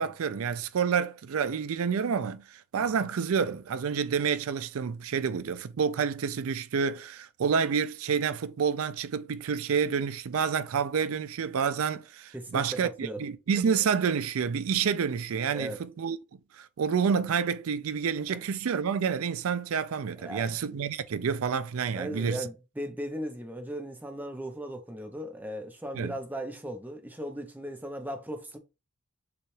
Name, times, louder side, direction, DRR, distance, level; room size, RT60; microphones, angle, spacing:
voice 1, 0.0-16.2 16.6-22.4 25.9-26.1, right 6 dB, 70° right, 0.4 m, -29 dB
voice 2, 12.3-13.2 15.5-15.8 18.3-18.4 20.2-20.5 22.0-28.6, equal, 10° right, 0.6 m, -37 dB
6.9 x 2.4 x 3.2 m
head